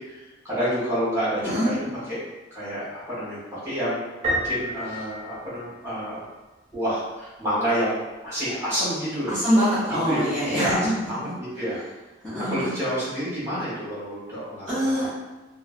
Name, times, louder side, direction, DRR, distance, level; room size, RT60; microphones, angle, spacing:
voice 1, 0.0-1.8 2.1-2.2 2.5-6.2 6.7-9.3 10.0-11.8 12.4-15.1, equal, 15° right, -10 dB, 1.2 m, -29 dB
voice 2, 1.4-1.8 9.3-11.4 12.2-12.7 14.7-15.1, equal, 5° left, -15 dB, 0.7 m, -24 dB
Piano, 4.2-6.1, equal, 35° right, 0.7 m, -29 dB
2.7 x 2.1 x 2.5 m, 1.1 s
head